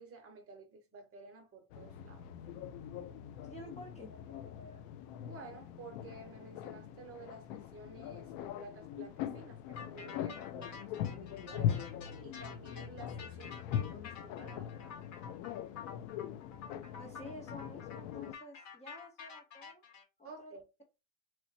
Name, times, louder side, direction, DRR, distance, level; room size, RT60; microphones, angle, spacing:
voice 1, 0.0-2.3 5.2-11.9 12.2-15.1 20.2-20.6, right 3 dB, 30° right, 0.8 m, -53 dB
sound 1, 1.7-18.4, left 10 dB, 90° left, 0.6 m, -41 dB
voice 2, 3.4-4.9 17.0-19.8 20.2-20.6, left 1 dB, 15° left, 0.5 m, -51 dB
sound 2, 9.8-20.0, left 6 dB, 40° left, 0.9 m, -50 dB
3.0 x 2.0 x 4.0 m
cardioid pair, 135°, 44 cm